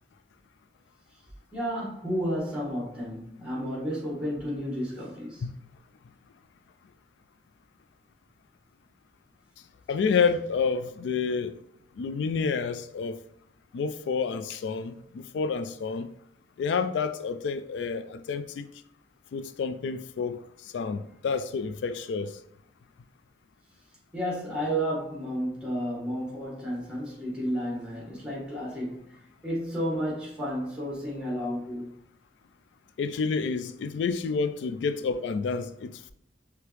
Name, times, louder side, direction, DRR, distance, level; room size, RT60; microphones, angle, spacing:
voice 1, 1.5-5.5 24.1-31.9, equal, 5° right, 1.5 m, -32 dB
voice 2, 9.9-11.6 12.0-13.2 13.7-16.1 16.6-18.7 19.3-22.4 33.0-36.1, left 5 dB, 80° left, 0.3 m, -29 dB
4.9 x 3.5 x 3.1 m
head